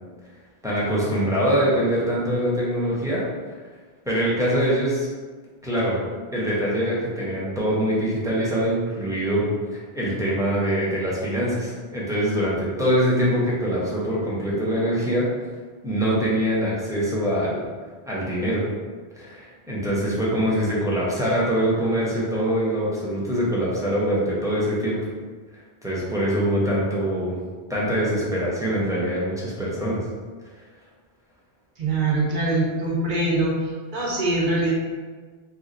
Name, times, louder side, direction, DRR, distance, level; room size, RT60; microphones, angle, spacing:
voice 1, 0.6-3.2 4.1-5.1 5.6-6.0 6.3-15.3 15.8-17.6 18.1-18.6 19.1-25.0 25.8-27.4 27.7-30.0, equal, 5° right, -7 dB, 0.7 m, -23 dB
voice 2, 31.8-33.6 33.9-34.7, right 2 dB, 55° right, -3 dB, 0.9 m, -23 dB
3.1 x 2.4 x 3.8 m, 1.4 s
omnidirectional pair, 1.1 m